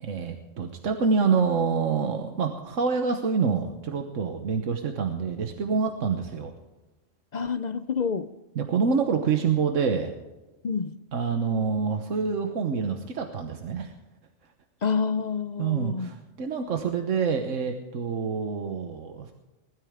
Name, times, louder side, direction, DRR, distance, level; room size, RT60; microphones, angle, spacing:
voice 1, 0.0-6.5 8.5-10.1 11.1-13.9 15.6-19.3, right 5 dB, 85° right, 5 dB, 1.4 m, -26 dB
voice 2, 7.3-8.3 10.6-10.9 14.8-16.1, left 5 dB, 50° left, 13 dB, 0.5 m, -28 dB
20.5 x 12.5 x 3.7 m, 1.1 s
omnidirectional pair, 1.3 m